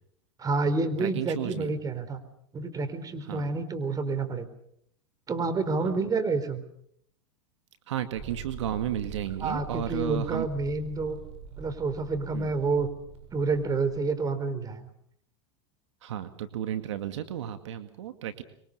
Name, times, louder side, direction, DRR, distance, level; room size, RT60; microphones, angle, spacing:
voice 1, 0.4-2.2 2.5-4.5 5.3-6.6 9.4-11.2 11.6-12.9 13.3-14.8, right 3 dB, 25° right, 10 dB, 4.0 m, -29 dB
voice 2, 1.0-1.7 3.3-3.4 5.8-6.0 7.9-10.5 12.3-12.5 16.0-18.4, right 10 dB, 80° right, 9 dB, 2.1 m, -33 dB
sound 1, 8.1-14.1, right 5 dB, 45° right, 7.6 m, -44 dB
25.0 x 23.0 x 6.8 m, 0.69 s
hypercardioid pair, 105°, 15 cm